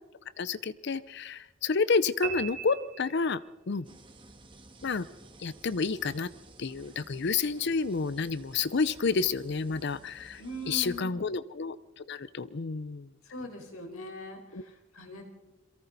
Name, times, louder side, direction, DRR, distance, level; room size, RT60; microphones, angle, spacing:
voice 1, 0.4-3.8 4.8-5.1 5.4-6.3 6.6-13.1 14.5-14.6, left 4 dB, 55° left, 17 dB, 0.6 m, -30 dB
sound 1, 2.2-3.8, right 7 dB, 90° right, 3.1 m, -38 dB
sound 2, 3.8-11.0, right 2 dB, 25° right, 1.9 m, -54 dB
voice 2, 10.4-11.3 13.2-15.2, equal, 85° left, 3 dB, 4.5 m, -41 dB
29.0 x 23.0 x 4.1 m, 1.1 s
head